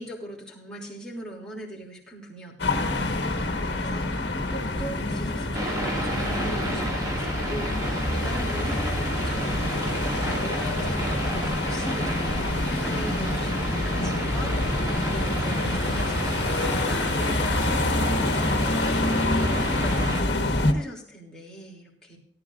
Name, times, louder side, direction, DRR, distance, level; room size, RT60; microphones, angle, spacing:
voice 1, 0.0-22.2, right 1 dB, 5° left, -5 dB, 3.0 m, -41 dB
sound 1, 2.6-20.7, left 1 dB, 70° left, 1.4 m, -26 dB
sound 2, 5.5-20.2, right 1 dB, 20° right, 2.3 m, -32 dB
18.0 x 11.0 x 2.6 m, 0.64 s
head